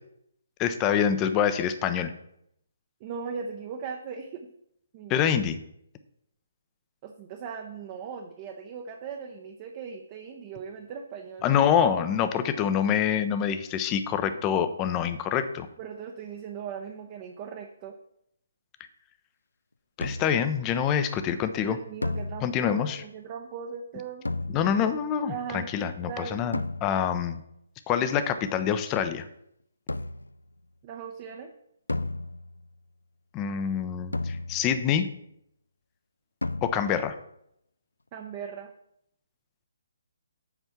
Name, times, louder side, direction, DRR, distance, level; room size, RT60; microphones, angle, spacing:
voice 1, 0.6-2.1 5.1-5.6 11.4-15.7 20.0-21.8 22.4-23.0 24.5-27.4 27.9-29.3 33.3-35.1 36.6-37.1, left 8 dB, 20° left, 10 dB, 0.6 m, -26 dB
voice 2, 3.0-4.5 4.9-5.3 7.0-11.5 15.8-18.0 21.7-24.3 25.3-26.4 30.8-31.5 38.1-38.7, right 6 dB, 30° right, 4 dB, 0.7 m, -39 dB
sound 1, 20.0-20.6 22.0-22.9 24.2-25.0 26.5-27.2 29.9-30.4 31.9-32.8 34.1-34.9 36.4-37.1, left 2 dB, 75° left, 0.4 m, -34 dB
8.0 x 4.4 x 5.9 m, 0.74 s
figure-of-eight pair, 135°, 0 cm